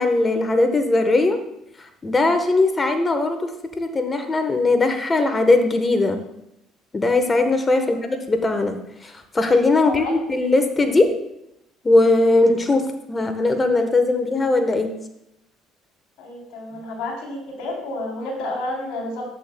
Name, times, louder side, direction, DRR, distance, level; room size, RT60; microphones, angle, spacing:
voice 1, 0.0-1.4 2.0-6.2 6.9-11.1 11.8-14.9, left 2 dB, 25° left, 7 dB, 1.2 m, -19 dB
voice 2, 16.2-19.2, left 2 dB, 75° left, -2 dB, 3.4 m, -30 dB
11.0 x 8.2 x 2.3 m, 0.83 s
supercardioid pair, 80°, 0 cm